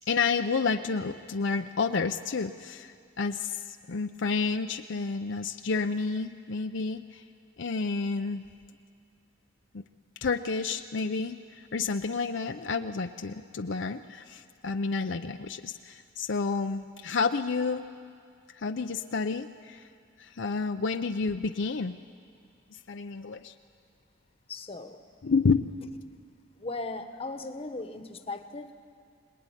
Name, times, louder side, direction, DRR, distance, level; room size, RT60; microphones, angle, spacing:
voice 1, 0.1-7.2 7.6-8.4 9.7-9.8 10.2-17.9 18.5-19.9 20.2-22.0 22.7-23.5 25.2-25.7, left 4 dB, 65° left, 6 dB, 0.6 m, -30 dB
voice 2, 24.5-25.0 26.6-28.7, left 3 dB, 30° left, 7 dB, 1.2 m, -37 dB
24.5 x 20.0 x 9.9 m, 2.3 s
head